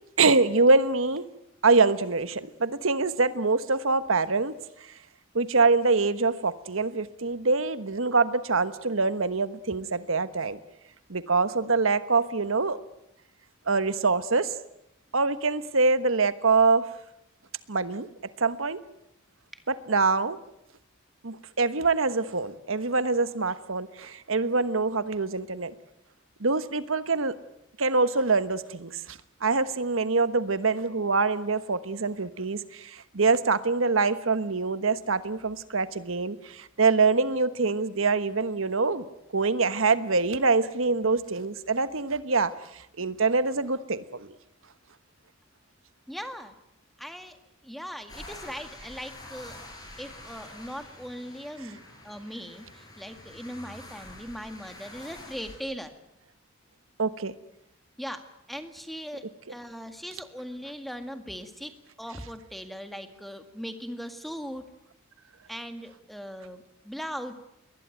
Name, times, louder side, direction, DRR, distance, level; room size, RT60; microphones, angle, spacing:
voice 1, 0.2-1.3 1.6-4.5 5.3-10.6 11.1-12.8 13.7-14.5 15.1-16.9 17.7-18.1 18.4-18.8 19.7-20.4 21.2-25.7 26.4-27.3 27.8-39.1 39.3-44.3 57.0-57.3, right 4 dB, 75° right, 13 dB, 1.3 m, -25 dB
voice 2, 46.1-46.5 47.0-47.4 47.6-49.6 50.0-55.9 58.0-58.2 58.5-64.7 65.5-67.3, equal, ahead, 7 dB, 1.9 m, -39 dB
sound 1, 48.1-55.6, left 1 dB, 20° left, 7.5 m, -46 dB
22.0 x 19.5 x 9.2 m, 0.81 s
head